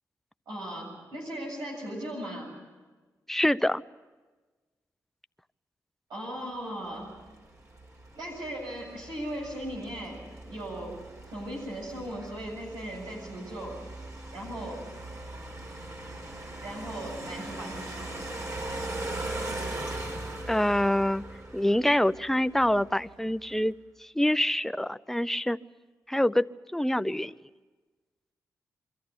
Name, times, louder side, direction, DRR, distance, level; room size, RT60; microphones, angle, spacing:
voice 1, 0.5-2.5 6.1-7.1 8.1-11.0 11.3-13.8 14.3-14.9 16.6-18.3, right 1 dB, 85° right, -2 dB, 7.5 m, -38 dB
voice 2, 3.3-3.8 20.5-21.2 21.5-23.7 24.0-25.6 26.1-27.4, left 1 dB, 5° left, 15 dB, 0.6 m, -26 dB
sound 1, 7.0-23.2, right 2 dB, 45° right, 5.6 m, -40 dB
23.5 x 14.0 x 10.0 m, 1.3 s
supercardioid pair, 45°, 7 cm